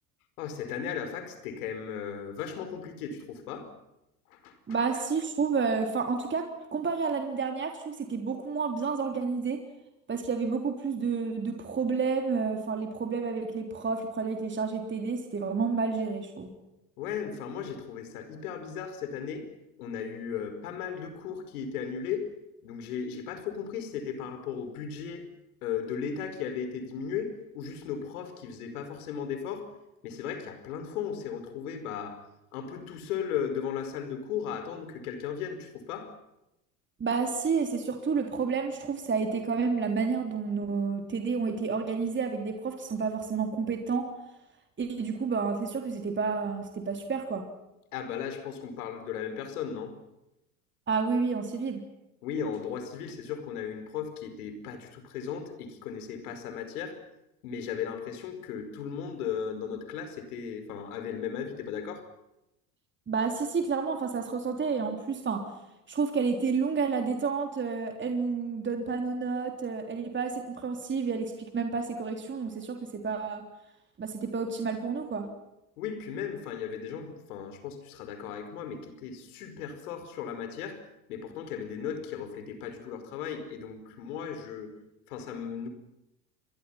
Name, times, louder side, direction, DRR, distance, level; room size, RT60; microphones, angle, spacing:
voice 1, 0.4-3.7 4.3-4.6 17.0-19.5 19.8-22.3 22.6-25.3 25.6-29.7 30.0-32.2 32.5-36.1 47.9-49.9 52.2-57.0 57.4-62.1 75.8-80.8 81.1-84.7 85.1-85.7, left 7 dB, 70° left, 9 dB, 5.1 m, -36 dB
voice 2, 4.7-9.6 10.1-16.5 37.0-44.1 44.8-47.5 50.9-51.8 63.1-65.5 65.9-73.4 74.0-75.3, right 5 dB, 25° right, 4 dB, 3.5 m, -30 dB
30.0 x 23.0 x 5.9 m, 0.88 s
hypercardioid pair, 80°, 45 cm